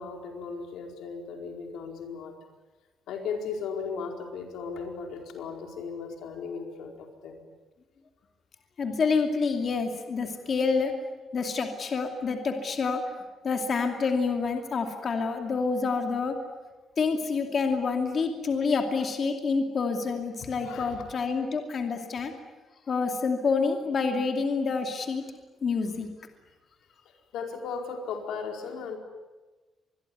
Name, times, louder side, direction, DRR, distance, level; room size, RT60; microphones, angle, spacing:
voice 1, 0.0-2.4 3.1-7.4 20.4-20.9 27.0-29.0, left 5 dB, 90° left, 3 dB, 4.7 m, -36 dB
voice 2, 8.8-10.9 11.3-13.0 13.4-16.4 17.0-22.3 22.9-25.2 25.6-26.1, left 4 dB, 35° left, 4 dB, 2.6 m, -27 dB
26.0 x 21.5 x 9.6 m, 1.2 s
cardioid pair, 180°, 0 cm